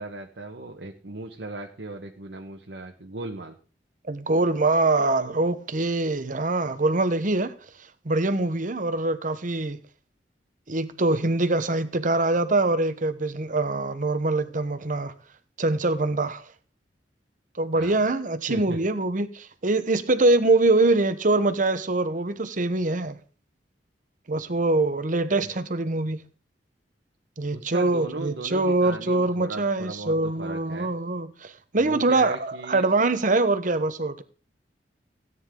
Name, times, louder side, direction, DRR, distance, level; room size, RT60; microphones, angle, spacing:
voice 1, 0.0-3.6 17.7-18.0 18.5-18.8 25.4-25.5 27.5-30.9 31.8-32.9 33.6-33.8, right 2 dB, 75° right, 1.3 m, -37 dB
voice 2, 4.1-7.5 8.0-9.8 10.7-15.1 15.6-16.4 17.6-23.2 24.3-26.2 27.4-34.2, right 2 dB, 50° right, 1.1 m, -24 dB
16.5 x 9.6 x 3.8 m
head